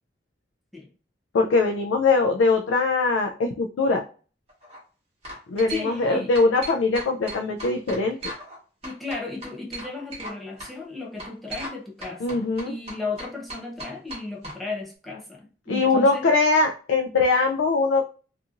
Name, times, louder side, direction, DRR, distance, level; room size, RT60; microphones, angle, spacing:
voice 1, 1.3-4.0 5.5-8.2 12.2-12.7 15.7-18.1, left 3 dB, 90° left, 4 dB, 0.3 m, -21 dB
sound 1, 4.5-4.8 5.2-6.1 6.3-8.6 8.8-10.3 10.6-10.7 11.2-11.8 12.0-14.6, right 1 dB, 35° right, 1.1 m, -37 dB
voice 2, 5.7-6.3 8.8-16.3, left 3 dB, ahead, -5 dB, 0.6 m, -35 dB
2.8 x 2.4 x 2.4 m, 0.38 s
head